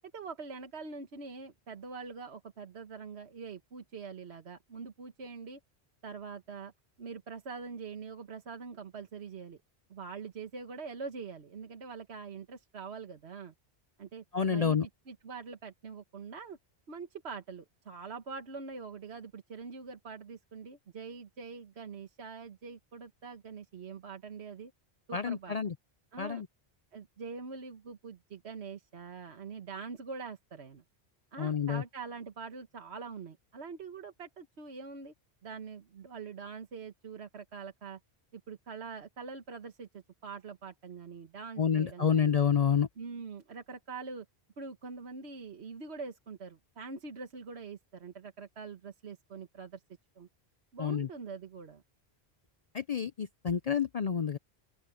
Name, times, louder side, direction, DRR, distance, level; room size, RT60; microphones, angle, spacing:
voice 1, 0.1-5.6 6.0-6.7 7.0-9.6 9.9-13.5 14.0-14.8 15.1-16.6 16.9-24.7 25.1-25.6 26.1-26.4 26.9-30.8 31.3-35.1 35.4-38.0 38.3-42.4 43.0-44.2 44.6-49.8 50.2-50.3 50.7-51.8, right 5 dB, 80° right, 1.6 m, -44 dB
voice 2, 14.3-14.9 25.1-25.7 26.2-26.5 31.4-31.8 41.6-42.9 50.8-51.1 52.7-54.4, left 7 dB, 45° left, 0.5 m, -28 dB
open air
omnidirectional pair, 1.1 m